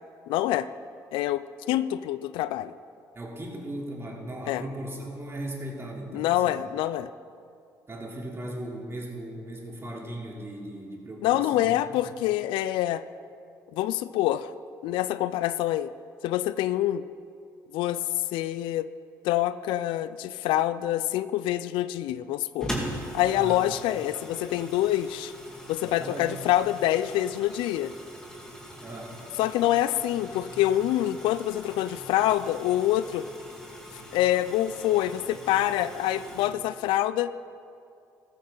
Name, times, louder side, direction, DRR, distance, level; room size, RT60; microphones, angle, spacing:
voice 1, 0.3-0.7 1.1-2.7 4.5-4.6 6.1-7.1 11.2-13.0 13.7-14.5 14.8-15.9 16.2-17.0 17.7-18.0 18.3-18.9 19.2-22.7 23.1-25.3 25.7-27.9 29.4-33.2 34.1-37.3, left 13 dB, 80° left, 15 dB, 0.4 m, -26 dB
voice 2, 3.1-6.6 7.9-12.0 23.3-23.7 25.8-26.4 28.8-29.1, right 1 dB, 30° right, -2 dB, 3.4 m, -38 dB
sound 1, 22.6-36.5, equal, 5° left, 3.3 m, -41 dB
14.0 x 14.0 x 3.9 m, 2.4 s
supercardioid pair, 60°, 8 cm